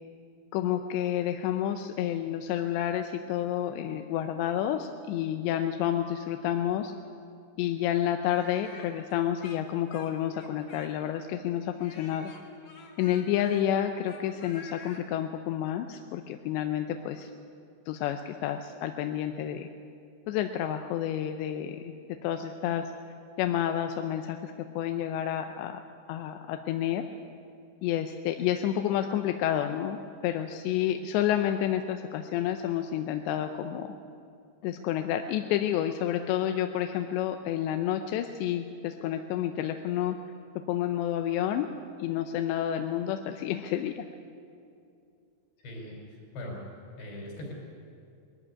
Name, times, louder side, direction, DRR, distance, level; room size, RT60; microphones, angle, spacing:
voice 1, 0.5-6.9 7.6-12.3 13.0-17.3 17.9-19.7 20.3-21.9 22.2-22.8 23.4-25.8 26.1-27.0 27.8-33.9 34.6-40.2 40.7-41.7 42.0-44.1, left 11 dB, 80° left, 6 dB, 2.8 m, -30 dB
Speech, 8.3-11.2 11.8-15.0, left 4 dB, 45° left, 2.9 m, -49 dB
voice 2, 45.6-46.6 47.0-47.5, left 1 dB, 65° left, -1 dB, 7.1 m, -40 dB
21.0 x 14.5 x 9.7 m, 2.5 s
omnidirectional pair, 5.3 m